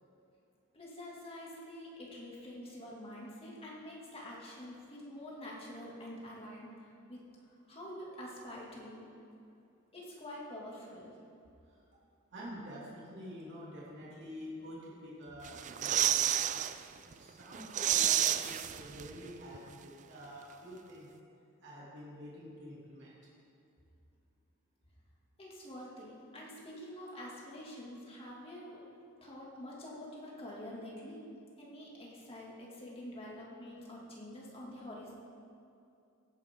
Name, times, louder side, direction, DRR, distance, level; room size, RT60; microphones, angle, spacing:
voice 1, 0.7-7.2 7.7-9.1 9.9-11.2 25.4-28.8 29.2-31.3 31.6-35.1, left 1 dB, 25° left, -4 dB, 2.2 m, -47 dB
voice 2, 12.3-16.6 17.0-21.1 21.6-23.1, equal, 55° right, -6 dB, 2.5 m, -48 dB
sound 1, 15.4-16.7 17.1-17.2 17.5-19.3 19.5-19.6, right 11 dB, 35° right, 0.3 m, -30 dB
16.0 x 9.4 x 3.7 m, 2.6 s
head